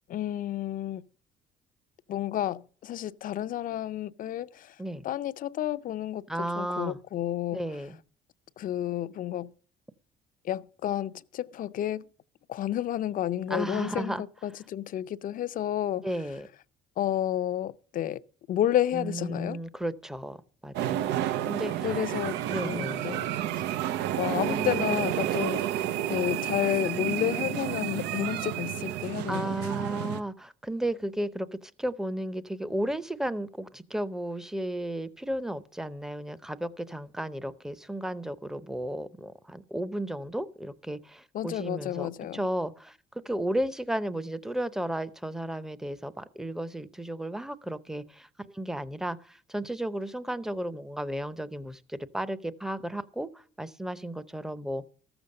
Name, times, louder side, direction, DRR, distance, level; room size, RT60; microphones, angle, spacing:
voice 1, 0.1-1.1 2.1-4.8 5.0-7.6 8.6-9.5 10.4-12.1 12.5-16.1 17.0-18.2 18.5-19.6 21.8-23.3 24.2-25.8 26.1-29.5 41.3-42.4, left 12 dB, 55° left, 0.5 m, -31 dB
voice 2, 6.3-7.0 7.5-8.0 13.5-14.2 16.0-16.5 18.9-20.4 20.6-21.2 21.4-21.9 22.5-23.1 24.4-25.0 29.3-43.0 43.2-48.3 48.5-53.3 53.6-54.8, right 1 dB, 5° right, 0.7 m, -34 dB
sound 1, 20.7-30.2, right 12 dB, 85° right, 0.6 m, -30 dB
14.0 x 7.0 x 6.5 m
cardioid pair, 110°, 17 cm